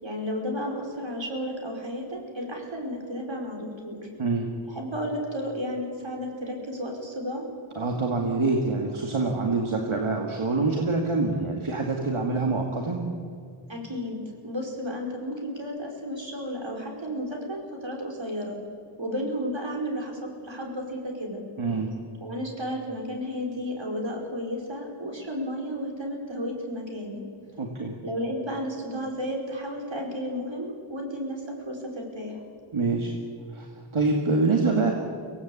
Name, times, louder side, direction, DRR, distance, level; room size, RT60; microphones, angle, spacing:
voice 1, 0.0-4.0 4.7-7.4 13.7-18.6 19.0-21.4 22.2-27.2 28.0-32.4, equal, 65° right, 1 dB, 5.0 m, -33 dB
voice 2, 4.2-4.5 7.8-13.0 21.6-21.9 27.6-28.0 32.7-33.1 33.5-33.7 33.9-34.9, right 3 dB, 80° right, 1 dB, 2.3 m, -25 dB
24.5 x 17.5 x 8.5 m, 2.3 s
cardioid pair, 45°, 48 cm